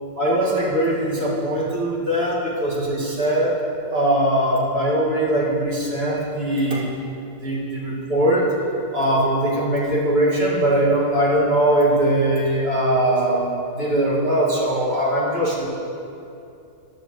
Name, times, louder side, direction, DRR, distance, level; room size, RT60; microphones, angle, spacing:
voice 1, 0.2-3.6 3.9-6.9 7.4-8.5 8.9-13.5 13.8-15.7, right 1 dB, 35° right, -6 dB, 2.3 m, -21 dB
15.0 x 10.5 x 3.2 m, 2.7 s
omnidirectional pair, 1.8 m